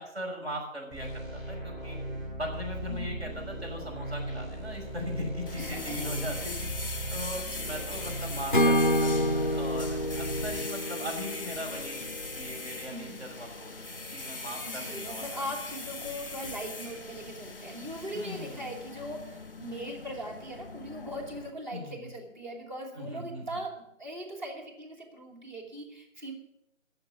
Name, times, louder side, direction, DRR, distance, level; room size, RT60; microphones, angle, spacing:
voice 1, 0.0-2.0 2.4-6.6 6.8-13.8 14.1-15.4 18.1-18.8 21.7-22.1 23.0-23.6, left 1 dB, 55° right, 1 dB, 5.9 m, -39 dB
sound 1, 0.9-10.6, right 1 dB, ahead, 3.1 m, -38 dB
voice 2, 2.9-3.3 5.6-6.5 7.3-8.4 12.9-13.5 14.6-26.3, right 1 dB, 35° right, 0 dB, 3.0 m, -40 dB
sound 2, 5.5-21.5, left 3 dB, 15° left, 1.0 m, -40 dB
Acoustic guitar / Strum, 8.5-12.5, equal, 40° left, 0.4 m, -28 dB
17.0 x 7.2 x 7.1 m, 0.80 s
figure-of-eight pair, 170°, 40 cm